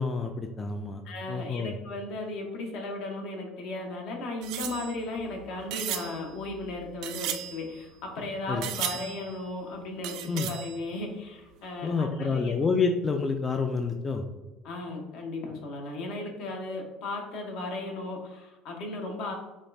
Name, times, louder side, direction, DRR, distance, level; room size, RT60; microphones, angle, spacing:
voice 1, 0.0-1.0 1.3-1.7 8.5-8.6 10.3-10.5 11.8-14.2, left 4 dB, 25° left, 5 dB, 0.3 m, -28 dB
voice 2, 1.0-12.5 14.6-19.3, left 2 dB, 70° left, 2 dB, 0.9 m, -36 dB
sound 1, 4.4-8.2 8.6-9.6 10.0-11.2 11.5-11.6 11.8-11.9, right 11 dB, 70° right, 0.3 m, -37 dB
5.1 x 2.3 x 2.6 m, 1.1 s
supercardioid pair, 110°, 0 cm